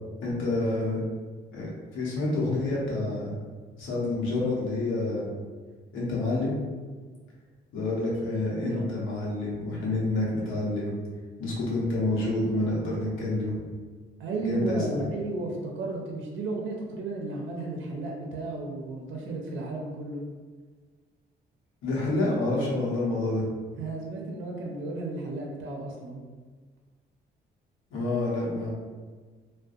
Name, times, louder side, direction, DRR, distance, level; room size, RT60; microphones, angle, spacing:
voice 1, 0.2-1.0 1.5-3.3 3.8-5.3 5.9-6.6 7.7-10.9 11.4-13.6 14.4-15.1 21.8-23.4 27.9-28.7, left 2 dB, 85° left, -5 dB, 0.8 m, -28 dB
voice 2, 14.2-20.2 23.8-26.2, right 2 dB, 75° right, -1 dB, 0.5 m, -33 dB
2.5 x 2.1 x 2.4 m, 1.5 s
cardioid pair, 90°, 20 cm